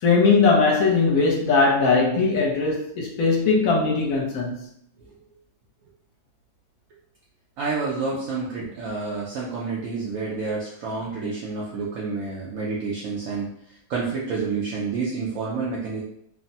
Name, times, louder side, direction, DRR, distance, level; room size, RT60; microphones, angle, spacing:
voice 1, 0.0-4.6, left 4 dB, 70° left, -2 dB, 1.0 m, -20 dB
voice 2, 7.6-13.5 13.9-16.0, right 4 dB, 70° right, -5 dB, 0.9 m, -29 dB
3.2 x 2.0 x 2.7 m, 0.71 s
omnidirectional pair, 1.7 m